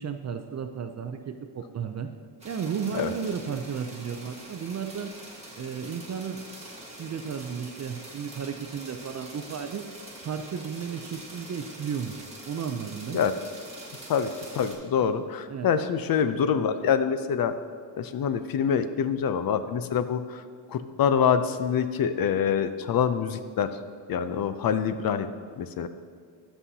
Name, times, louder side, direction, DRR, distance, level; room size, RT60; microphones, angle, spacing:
voice 1, 0.0-2.1 2.4-5.1 5.6-6.4 6.9-9.8 10.2-13.2 15.5-15.8, right 7 dB, 40° right, 7 dB, 0.4 m, -34 dB
sound 1, 2.4-14.7, right 1 dB, 15° right, 1.5 m, -44 dB
voice 2, 14.5-17.5 18.0-20.4 20.7-23.7 24.1-25.3 25.6-25.9, left 7 dB, 55° left, 11 dB, 0.5 m, -25 dB
12.5 x 5.7 x 2.7 m, 2.1 s
cardioid pair, 110°, 43 cm